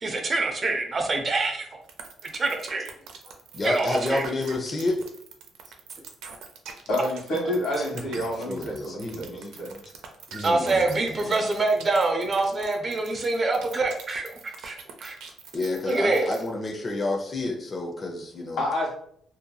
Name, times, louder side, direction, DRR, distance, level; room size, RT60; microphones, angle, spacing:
voice 1, 0.0-1.7 2.3-2.9 3.6-4.3 10.4-15.2 15.8-16.3, right 3 dB, 40° right, 3 dB, 0.5 m, -25 dB
sound 1, 1.9-16.5, right 6 dB, 85° right, 0.4 m, -43 dB
voice 2, 3.5-5.1 7.8-7.9 8.1-9.8 10.3-11.1 15.5-18.6, left 2 dB, 35° left, 0 dB, 0.5 m, -30 dB
voice 3, 6.9-9.7 18.6-18.9, left 1 dB, 85° left, -4 dB, 1.3 m, -28 dB
2.8 x 2.7 x 2.2 m, 0.67 s
cardioid pair, 90°, 0 cm